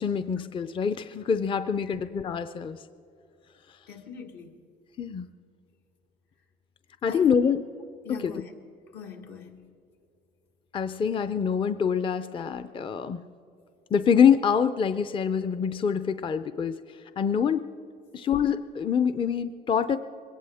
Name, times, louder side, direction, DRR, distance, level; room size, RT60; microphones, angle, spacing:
voice 1, 0.0-2.8 5.0-5.3 7.0-7.6 8.2-8.4 10.7-13.2 13.9-16.8 17.2-17.6 18.1-20.0, left 7 dB, 30° left, 0.5 m, -25 dB
voice 2, 3.9-4.6 7.1-7.5 8.0-8.5 8.9-9.7, left 6 dB, 80° left, 1.7 m, -41 dB
21.5 x 17.5 x 3.5 m
cardioid pair, 110°, 17 cm